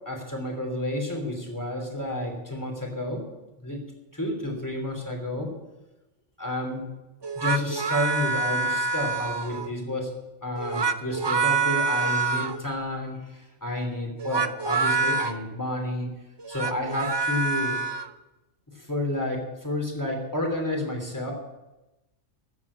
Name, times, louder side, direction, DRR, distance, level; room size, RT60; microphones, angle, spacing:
voice 1, 0.0-3.2 3.6-3.8 4.1-5.5 6.4-6.8 7.4-10.1 10.4-16.1 16.5-17.8 18.7-21.3, left 1 dB, 15° left, 2 dB, 2.9 m, -30 dB
sound 1, 7.2-9.7 10.6-12.6 14.2-15.3 16.4-18.1, right 4 dB, 45° right, 0.3 m, -26 dB
14.0 x 7.7 x 8.4 m, 1.0 s
omnidirectional pair, 1.3 m